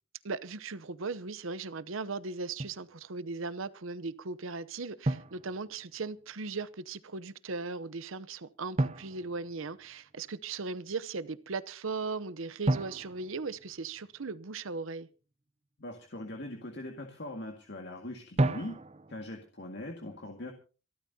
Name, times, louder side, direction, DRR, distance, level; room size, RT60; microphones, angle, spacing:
voice 1, 0.2-15.1, right 4 dB, 75° right, 0.8 m, -38 dB
Drum, 2.6-2.9 5.0-6.2 8.8-10.2 12.7-14.4 18.4-19.3, right 2 dB, 30° right, 0.7 m, -33 dB
voice 2, 15.8-18.8 19.1-20.5, left 1 dB, 55° left, 2.0 m, -41 dB
27.0 x 13.0 x 2.8 m
head